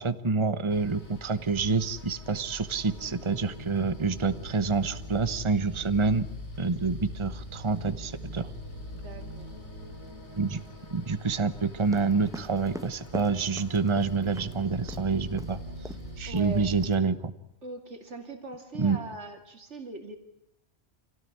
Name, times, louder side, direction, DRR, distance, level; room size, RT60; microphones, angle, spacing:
voice 1, 0.0-6.3 6.6-8.5 10.4-10.6 10.9-15.6 16.2-17.3 18.8-19.0, right 4 dB, 25° right, 12 dB, 1.1 m, -27 dB
sound 1, 0.7-17.0, equal, 80° left, 4.9 m, -42 dB
voice 2, 8.9-9.5 16.2-16.7 17.6-20.2, right 2 dB, 85° right, 5 dB, 2.9 m, -41 dB
sound 2, 11.8-14.5 14.9-15.1 15.4-15.6 15.8-16.1 16.3-16.9, right 1 dB, 5° right, 0.8 m, -42 dB
26.5 x 17.5 x 9.6 m, 0.81 s
omnidirectional pair, 1.2 m